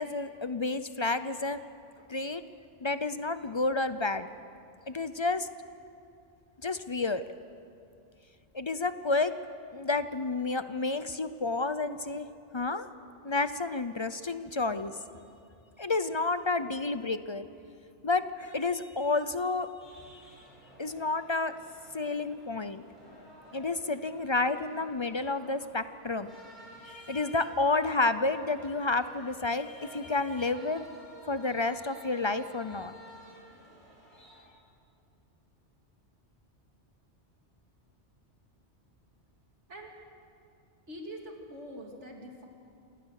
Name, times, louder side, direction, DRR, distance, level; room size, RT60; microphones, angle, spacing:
voice 1, 0.0-1.6 2.1-2.4 2.8-4.3 4.9-5.5 6.6-7.2 8.5-9.3 9.7-12.3 12.5-12.9 13.2-14.9 15.8-17.5 18.0-19.7 20.8-21.5 21.9-22.8 23.5-26.3 26.8-30.9 31.3-32.9, left 3 dB, 35° left, 12 dB, 0.5 m, -30 dB
sound 1, 19.8-34.4, right 1 dB, 40° right, 7.1 m, -52 dB
voice 2, 40.9-42.5, equal, 75° right, 1 dB, 3.0 m, -44 dB
27.5 x 18.0 x 6.6 m, 2.5 s
omnidirectional pair, 1.2 m